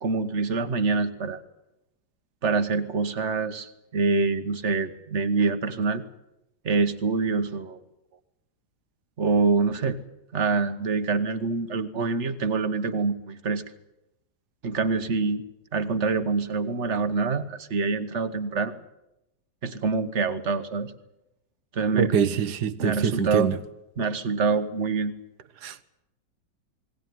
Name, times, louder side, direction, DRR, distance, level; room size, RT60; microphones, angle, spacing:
voice 1, 0.0-1.4 2.4-6.0 6.6-7.8 9.2-10.0 10.3-13.6 14.6-15.4 15.7-18.7 19.6-20.9 21.7-22.2 22.8-23.5 24.0-25.1, right 4 dB, 45° right, 9 dB, 1.4 m, -25 dB
voice 2, 21.9-23.6 25.6-25.8, right 7 dB, 65° right, 12 dB, 1.5 m, -24 dB
20.0 x 18.5 x 9.4 m, 0.91 s
omnidirectional pair, 1.9 m